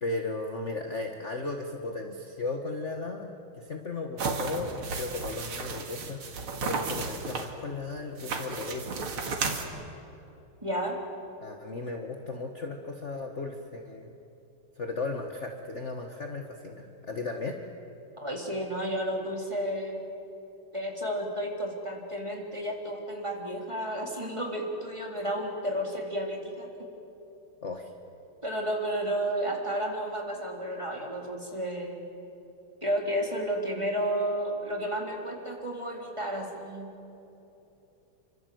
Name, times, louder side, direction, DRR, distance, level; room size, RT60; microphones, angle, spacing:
voice 1, 0.0-6.2 6.6-9.1 11.4-14.1 14.8-17.6 27.6-27.9, left 3 dB, 35° left, 3 dB, 1.6 m, -36 dB
sound 1, 4.2-7.5 8.2-9.7, right 4 dB, 80° right, 3.0 m, -33 dB
voice 2, 10.6-11.0 18.2-20.0 20.7-26.7 28.4-31.9 32.8-36.9, equal, 15° right, 0 dB, 3.7 m, -32 dB
28.5 x 25.5 x 7.9 m, 3.0 s
omnidirectional pair, 2.3 m